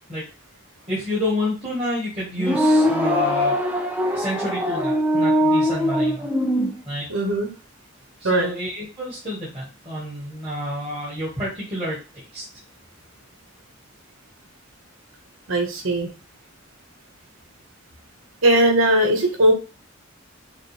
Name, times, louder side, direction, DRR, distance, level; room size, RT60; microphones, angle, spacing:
voice 1, 0.9-3.6 4.0-6.3 6.9-7.1 8.2-12.0 12.3-12.4, left 1 dB, 30° right, -8 dB, 1.5 m, -29 dB
sound 1, 2.4-6.7, equal, 5° right, 0.4 m, -21 dB
voice 2, 7.1-7.5 8.2-8.5 15.5-16.1 18.4-19.5, right 1 dB, 85° right, 3 dB, 1.1 m, -19 dB
5.6 x 2.1 x 3.3 m, 0.34 s
head